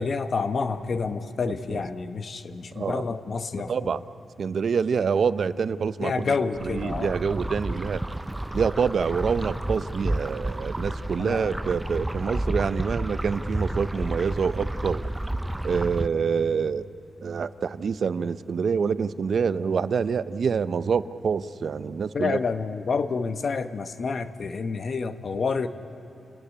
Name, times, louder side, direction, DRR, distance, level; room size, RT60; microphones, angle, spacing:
voice 1, 0.0-4.0 6.0-7.2 11.2-11.5 22.1-25.7, left 4 dB, 50° left, 9 dB, 1.0 m, -28 dB
voice 2, 2.7-3.0 3.7-4.0 4.4-6.3 6.6-8.0 8.5-15.0 15.6-16.9 17.2-22.4, right 6 dB, 60° right, 14 dB, 0.5 m, -26 dB
sound 1, 6.5-16.1, right 1 dB, 10° right, 0.5 m, -31 dB
29.0 x 13.5 x 9.9 m, 2.5 s
wide cardioid pair, 115°, 0 cm